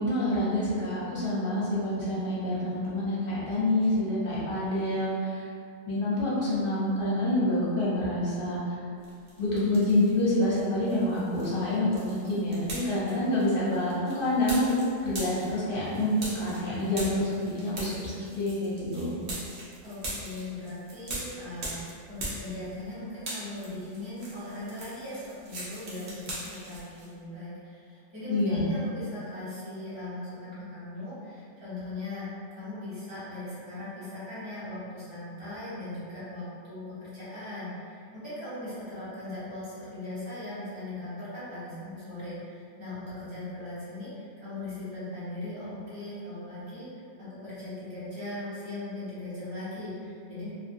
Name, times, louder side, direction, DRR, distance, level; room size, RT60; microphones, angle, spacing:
voice 1, 0.0-5.5 5.9-8.7 9.4-19.2 28.3-28.6, left 1 dB, 50° left, -8 dB, 0.8 m, -27 dB
sound 1, 9.0-10.2 10.5-22.9 23.2-27.1, right 1 dB, 60° right, 1.0 m, -41 dB
voice 2, 19.8-50.5, left 2 dB, 20° right, -13 dB, 1.1 m, -39 dB
2.6 x 2.5 x 2.6 m, 2.3 s
omnidirectional pair, 1.4 m